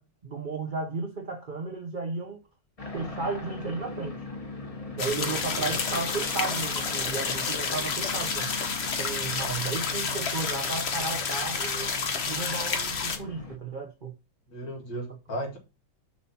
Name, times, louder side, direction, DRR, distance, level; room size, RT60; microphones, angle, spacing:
voice 1, 0.0-2.4 2.9-4.2 5.0-8.5 9.0-11.9 12.3-14.1, right 4 dB, 75° right, 0.4 m, -34 dB
sound 1, 2.8-13.6, left 3 dB, 20° left, 1.1 m, -40 dB
voice 2, 5.0-5.7 14.5-15.6, right 1 dB, 75° left, 2.8 m, -36 dB
sound 2, 5.0-13.2, left 5 dB, 45° left, 0.9 m, -30 dB
6.0 x 4.2 x 5.5 m
omnidirectional pair, 2.0 m